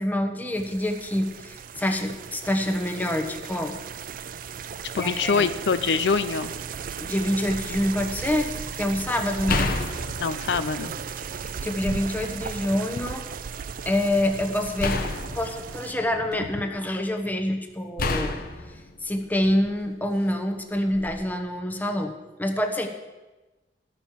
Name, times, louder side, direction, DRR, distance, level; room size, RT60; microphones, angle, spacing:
voice 1, 0.0-3.8 5.0-5.5 7.0-8.5 8.8-9.7 11.3-13.3 13.9-15.0 15.3-18.4 19.0-22.1 22.4-22.9, left 1 dB, 10° left, 4 dB, 0.9 m, -26 dB
sound 1, 0.6-15.9, right 6 dB, 50° right, 0.4 m, -36 dB
voice 2, 4.9-6.5 10.2-10.9, left 5 dB, 75° left, 11 dB, 0.5 m, -24 dB
sound 2, 9.5-11.3 11.8-12.7 14.8-16.7 18.0-19.8 20.9-21.1, left 3 dB, 55° left, 0.9 m, -31 dB
12.0 x 6.1 x 7.3 m, 1.1 s
head